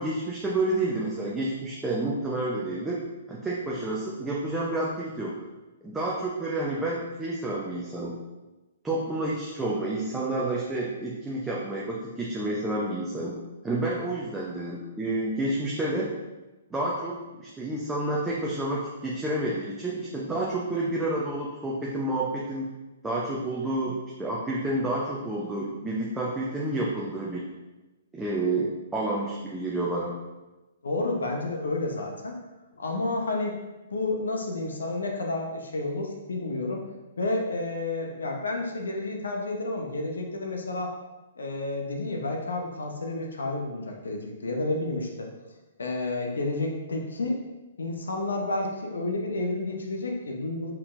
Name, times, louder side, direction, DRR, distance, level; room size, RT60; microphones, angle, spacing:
voice 1, 0.0-3.0 3.3-5.3 5.8-8.2 8.8-13.4 13.6-16.1 16.7-22.7 23.0-27.5 28.1-30.1, right 2 dB, 10° right, -5 dB, 0.6 m, -29 dB
voice 2, 30.8-32.4 32.8-33.6 33.9-36.8 37.2-40.9 41.4-45.3 45.8-47.4 47.8-50.7, left 2 dB, 75° left, 2 dB, 0.8 m, -30 dB
4.2 x 4.2 x 2.6 m, 1.1 s
hypercardioid pair, 125°, 0 cm